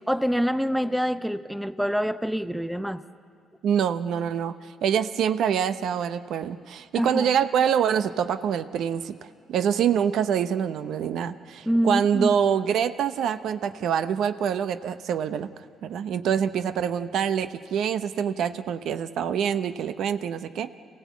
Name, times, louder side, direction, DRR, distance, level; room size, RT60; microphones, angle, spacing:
voice 1, 0.1-3.0 6.9-7.3 11.7-12.4, equal, 5° right, 13 dB, 0.7 m, -26 dB
voice 2, 3.6-4.5 4.8-9.1 9.5-15.5 15.8-20.8, right 8 dB, 75° right, 12 dB, 0.7 m, -25 dB
26.5 x 16.0 x 8.3 m, 2.3 s
cardioid pair, 90°, 0 cm